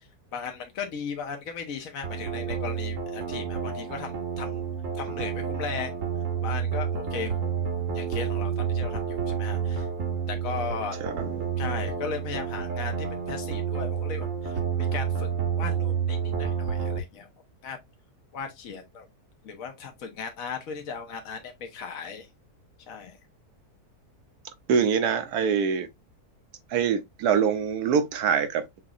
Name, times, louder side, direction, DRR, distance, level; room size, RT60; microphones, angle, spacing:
voice 1, 0.3-4.6 4.9-5.9 6.4-7.5 7.9-9.9 10.3-11.0 11.6-14.5 14.9-15.3 15.6-17.3 17.6-17.8 18.3-19.1 19.4-22.3 22.9-23.2, left 6 dB, 60° left, 1.4 m, -37 dB
sound 1, 2.0-17.0, right 7 dB, 60° right, 1.3 m, -29 dB
voice 2, 11.0-11.5 24.7-25.9 26.7-28.8, right 7 dB, 80° right, 1.3 m, -24 dB
6.5 x 3.0 x 2.4 m
omnidirectional pair, 1.7 m